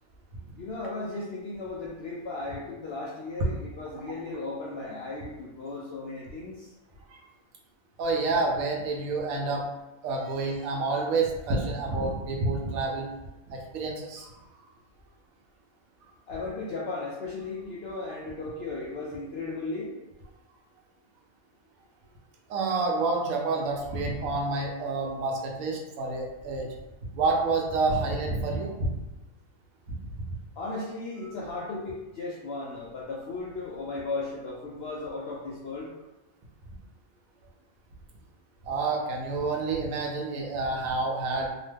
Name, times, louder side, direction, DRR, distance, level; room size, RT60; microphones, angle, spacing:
voice 1, 0.5-6.7 16.3-19.9 30.6-35.9, left 3 dB, 70° left, -5 dB, 0.6 m, -36 dB
voice 2, 8.0-9.7 10.0-13.1 13.5-14.3 22.5-26.7 27.1-28.9 38.6-41.5, right 3 dB, 75° right, -1 dB, 1.1 m, -28 dB
2.9 x 2.1 x 3.3 m, 1.1 s
omnidirectional pair, 1.5 m